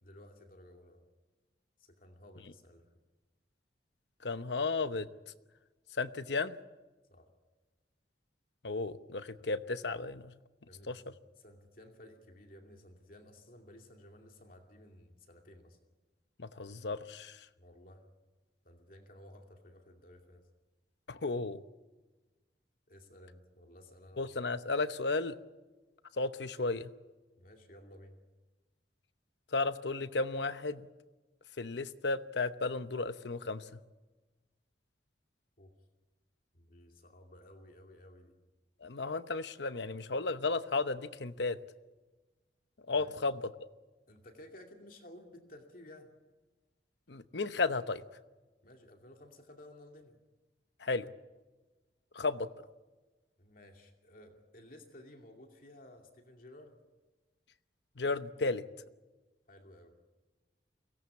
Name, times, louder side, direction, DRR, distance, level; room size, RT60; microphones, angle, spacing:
voice 1, 0.0-1.0 1.8-3.0 7.1-7.3 10.7-15.8 17.6-18.1 18.6-20.5 22.9-24.2 27.4-28.2 35.6-35.7 36.5-38.4 43.0-43.1 44.1-46.1 48.6-50.2 53.4-56.8 59.5-59.9, left 1 dB, 50° left, 3 dB, 2.5 m, -55 dB
voice 2, 4.2-5.1 5.9-6.6 8.6-10.4 10.9-11.0 16.4-17.5 21.1-21.6 24.2-25.4 26.1-26.9 29.5-30.9 31.6-33.8 38.8-41.6 42.9-43.7 47.1-48.0 50.8-51.1 52.1-52.5 58.0-58.6, left 3 dB, 75° left, 12 dB, 1.0 m, -34 dB
23.5 x 17.5 x 8.5 m, 1.2 s
head